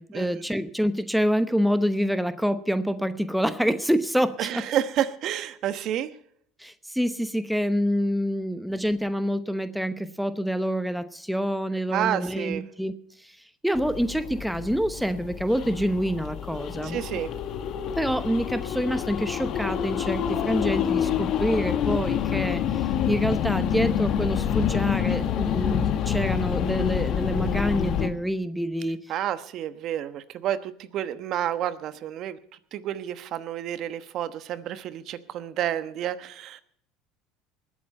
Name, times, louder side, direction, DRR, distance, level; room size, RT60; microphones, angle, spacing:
voice 1, 0.0-4.6 6.6-12.9 13.2-13.4 13.6-17.2 18.0-22.6 23.1-29.0, equal, ahead, 11 dB, 0.9 m, -27 dB
voice 2, 4.4-6.1 11.9-12.6 16.8-17.3 29.1-32.4 32.7-36.6, right 11 dB, 55° right, 13 dB, 1.1 m, -30 dB
sound 1, 13.7-28.1, left 9 dB, 55° left, 1.5 m, -27 dB
19.5 x 8.6 x 5.4 m, 0.63 s
supercardioid pair, 90°, 0 cm